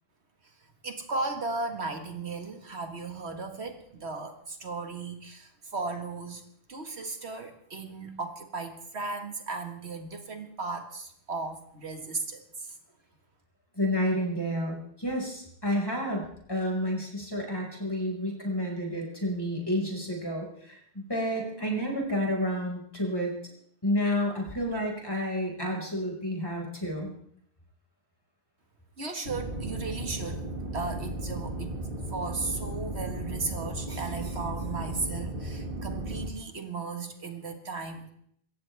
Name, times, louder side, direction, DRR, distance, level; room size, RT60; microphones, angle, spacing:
voice 1, 0.8-6.4 6.7-12.8 29.0-30.5 30.7-38.1, right 3 dB, 75° right, 5 dB, 2.0 m, -36 dB
voice 2, 13.8-23.3 23.8-27.1, equal, 20° left, -1 dB, 5.3 m, -30 dB
sound 1, 29.3-36.3, right 1 dB, 55° right, 2.3 m, -35 dB
27.0 x 14.5 x 3.4 m, 0.67 s
omnidirectional pair, 1.1 m